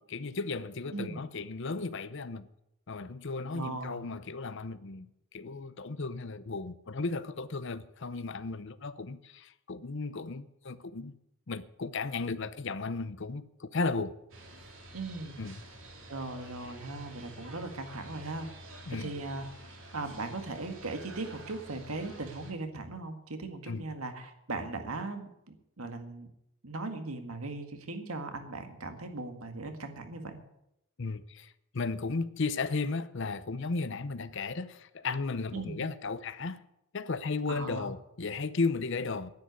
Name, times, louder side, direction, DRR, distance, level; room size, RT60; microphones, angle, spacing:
voice 1, 0.0-2.5 2.9-11.1 11.5-14.1 15.4-15.6 18.9-19.1 23.7-23.8 31.0-36.6 36.9-39.3, left 3 dB, 60° left, 0.7 m, -35 dB
voice 2, 0.9-1.2 3.5-4.0 14.9-15.4 16.1-18.5 18.9-19.5 19.9-25.3 25.8-26.3 26.6-30.4 35.5-35.9 37.5-37.9, right 2 dB, 85° right, 1.9 m, -38 dB
sound 1, 14.3-22.5, right 1 dB, 60° right, 3.1 m, -49 dB
10.5 x 9.9 x 9.4 m
head